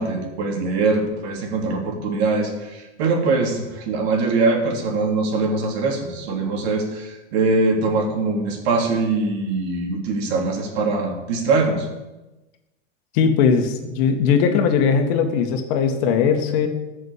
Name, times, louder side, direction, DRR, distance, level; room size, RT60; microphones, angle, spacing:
voice 1, 0.0-11.9, right 3 dB, 60° right, 2 dB, 3.4 m, -22 dB
voice 2, 13.1-16.7, left 6 dB, 55° left, 6 dB, 1.9 m, -19 dB
14.0 x 6.6 x 8.2 m, 1.1 s
hypercardioid pair, 125°, 37 cm